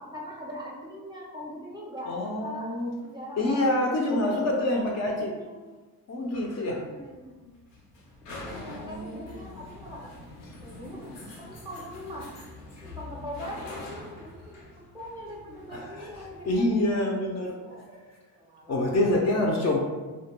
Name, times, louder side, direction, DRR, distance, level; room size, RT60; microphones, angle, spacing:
voice 1, 0.0-2.7 3.0-4.9 5.2-5.8 6.8-7.6 8.3-10.1 10.6-12.3 12.8-14.6 14.9-17.0 17.4-19.5, equal, 10° right, -4 dB, 0.5 m, -42 dB
voice 2, 2.0-3.0 3.4-5.3 6.1-6.8 8.5-9.3 15.7-17.6 18.7-19.8, left 1 dB, 40° left, -1 dB, 0.4 m, -27 dB
sound 1, 6.3-16.9, left 2 dB, 90° left, 0.7 m, -45 dB
2.2 x 2.2 x 2.9 m, 1.3 s
cardioid pair, 100°, 40 cm